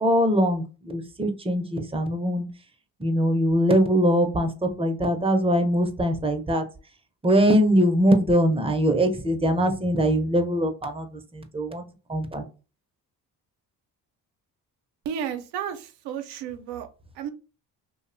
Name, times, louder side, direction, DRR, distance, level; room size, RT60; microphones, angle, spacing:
voice 1, 0.0-2.5 3.0-6.6 7.2-11.1 11.3-11.8 12.1-12.4, equal, 15° right, 6 dB, 0.5 m, -22 dB
voice 2, 15.1-16.9 17.2-17.3, right 8 dB, 90° right, 7 dB, 0.5 m, -32 dB
2.6 x 2.1 x 2.5 m, 0.33 s
cardioid pair, 80°, 38 cm